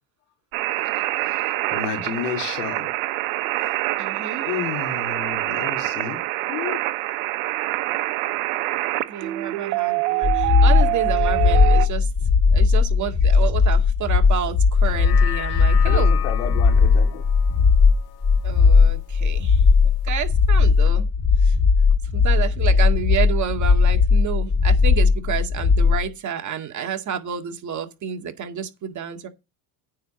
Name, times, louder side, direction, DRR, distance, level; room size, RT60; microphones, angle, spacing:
sound 1, 0.5-11.9, right 17 dB, 85° right, 1.0 m, -25 dB
voice 1, 0.9-2.9 4.4-6.2 6.5-6.8 15.8-17.2, left 8 dB, 90° left, 3.2 m, -31 dB
voice 2, 4.0-4.5 9.1-12.1 12.5-16.1 18.4-19.6 20.0-21.1 21.4-21.6 22.1-29.3, right 8 dB, 40° right, 2.0 m, -30 dB
sound 2, 10.2-26.1, left 5 dB, 25° left, 2.7 m, -17 dB
sound 3, 14.7-19.3 19.7-19.8, left 14 dB, 55° left, 2.0 m, -36 dB
9.3 x 4.7 x 7.4 m
supercardioid pair, 100°, 44 cm